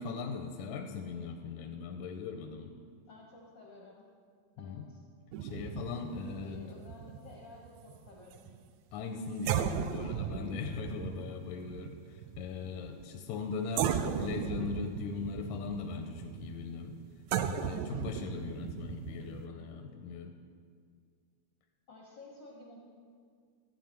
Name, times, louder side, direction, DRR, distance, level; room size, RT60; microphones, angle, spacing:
voice 1, 0.0-2.7 4.6-4.9 5.4-6.7 8.9-17.0 17.4-20.3, left 5 dB, 85° left, 4 dB, 2.1 m, -39 dB
voice 2, 3.1-4.1 4.6-5.0 6.4-8.5 19.1-19.5 21.9-22.8, left 2 dB, 55° left, -2 dB, 1.3 m, -53 dB
sound 1, 5.3-8.6 9.0-9.1 9.5-13.4 13.8-19.5, right 8 dB, 80° right, 1.7 m, -37 dB
14.0 x 8.8 x 4.5 m, 2.1 s
omnidirectional pair, 3.5 m